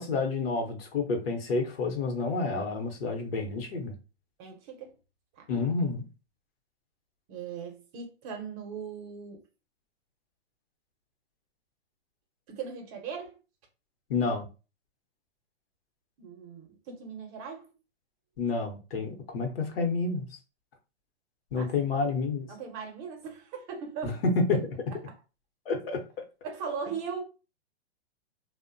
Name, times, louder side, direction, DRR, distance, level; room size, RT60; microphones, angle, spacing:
voice 1, 0.0-3.9 5.5-6.0 14.1-14.5 18.4-20.3 21.5-22.5 24.0-24.6 25.7-26.2, left 3 dB, 60° left, 0.9 m, -29 dB
voice 2, 4.4-4.9 5.4-5.5 7.3-9.4 12.5-13.4 16.2-17.7 21.5-21.7 22.5-24.2 25.0-25.1 26.4-27.2, right 6 dB, 35° right, 0.7 m, -39 dB
2.6 x 2.1 x 2.5 m
hypercardioid pair, 130°, 33 cm